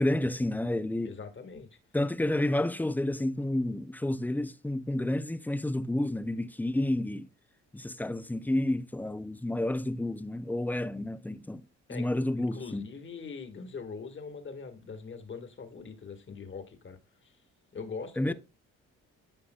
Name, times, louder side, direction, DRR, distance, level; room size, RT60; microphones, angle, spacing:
voice 1, 0.0-1.1 1.9-7.3 7.7-11.6 11.9-12.9 18.2-18.3, left 1 dB, 5° left, 0.5 m, -30 dB
voice 2, 1.0-1.7 11.9-17.4 17.7-18.3, left 5 dB, 40° left, 1.7 m, -42 dB
13.0 x 5.5 x 2.3 m
cardioid pair, 90°, 30 cm